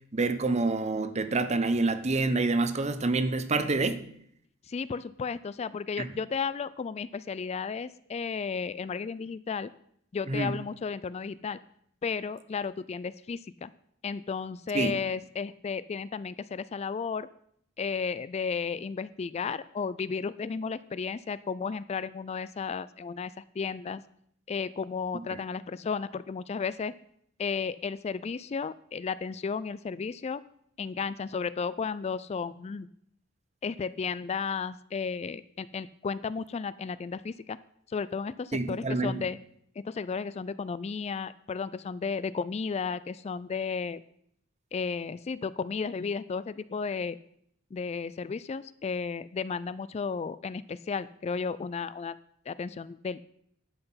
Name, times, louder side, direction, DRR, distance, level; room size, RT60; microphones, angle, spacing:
voice 1, 0.1-4.0 6.0-6.1 10.3-10.5 14.7-15.0 25.3-25.4 38.5-39.1, right 3 dB, 35° right, 0.8 m, -27 dB
voice 2, 4.7-9.7 10.1-11.6 12.0-13.7 14.0-17.3 17.8-24.0 24.5-26.9 27.4-30.4 30.8-32.9 33.6-37.6 37.9-39.4 39.8-44.0 44.7-47.2 47.7-52.2 52.5-53.2, left 5 dB, 30° left, 0.3 m, -33 dB
11.5 x 8.0 x 5.7 m
head